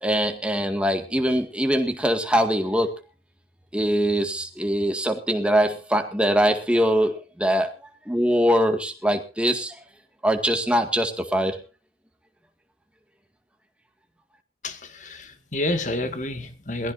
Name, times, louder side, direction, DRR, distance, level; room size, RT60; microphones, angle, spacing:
voice 1, 0.0-2.9 3.7-7.7 8.1-9.7 10.2-11.6, equal, 5° right, 2.0 m, -22 dB
voice 2, 14.6-16.9, left 1 dB, 40° left, 2.0 m, -29 dB
22.0 x 15.5 x 2.7 m
head